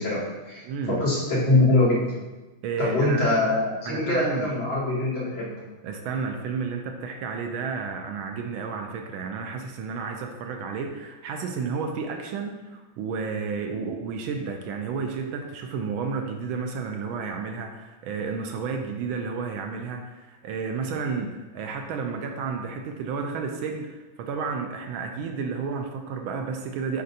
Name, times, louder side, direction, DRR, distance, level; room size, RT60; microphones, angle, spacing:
voice 1, 0.0-0.6 0.9-2.1 2.8-5.5, left 2 dB, 65° left, -9 dB, 3.0 m, -23 dB
voice 2, 0.6-1.0 2.6-3.4 3.8-4.5 5.8-27.0, right 5 dB, 80° right, 4 dB, 1.4 m, -31 dB
7.7 x 5.2 x 2.7 m, 1.1 s
omnidirectional pair, 2.2 m